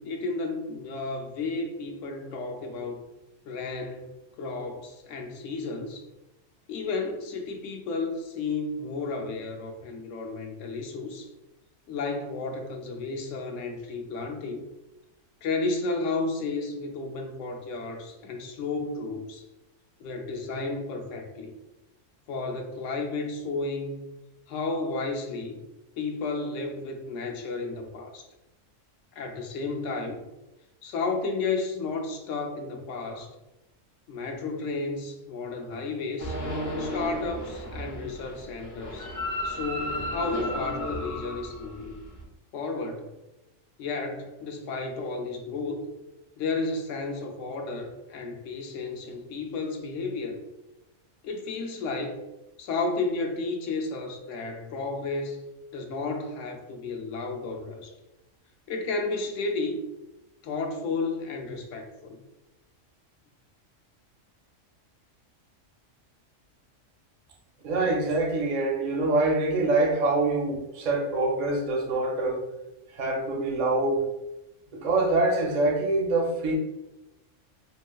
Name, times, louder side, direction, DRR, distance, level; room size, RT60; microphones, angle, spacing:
voice 1, 0.0-3.0 3.4-4.1 4.4-6.1 6.7-11.3 11.9-14.7 15.4-19.4 20.0-21.5 22.3-24.1 24.5-25.6 26.0-28.3 29.1-30.2 30.8-33.3 34.1-36.4 36.8-39.1 39.4-42.0 42.5-43.1 43.8-45.9 46.4-50.4 51.2-52.2 52.6-55.4 55.7-57.9 58.7-59.8 60.4-62.2, left 3 dB, 75° left, 3 dB, 0.9 m, -32 dB
sound 1, 36.2-42.2, left 1 dB, 45° left, 0.8 m, -33 dB
voice 2, 67.6-72.4 72.9-74.0 74.7-76.5, right 2 dB, 50° right, -1 dB, 0.6 m, -25 dB
3.1 x 2.8 x 2.2 m, 0.98 s
omnidirectional pair, 1.3 m